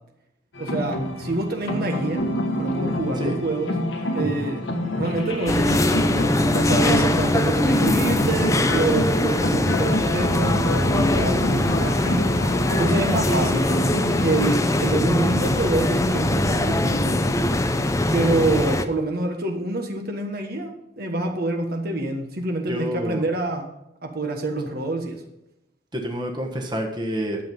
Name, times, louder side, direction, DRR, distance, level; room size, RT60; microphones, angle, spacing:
sound 1, 0.5-14.5, left 1 dB, 85° left, 1.6 m, -27 dB
voice 1, 0.6-2.3 2.6-3.8 4.1-4.7 5.0-6.0 6.5-12.2 12.7-13.8 14.2-17.3 18.1-23.7 24.0-25.2, right 2 dB, 55° right, 3 dB, 1.3 m, -26 dB
sound 2, 5.5-18.8, left 1 dB, 15° left, 0.6 m, -22 dB
voice 2, 22.7-23.2 25.9-27.4, equal, 25° right, 2 dB, 1.4 m, -28 dB
11.5 x 7.5 x 5.4 m, 0.88 s
head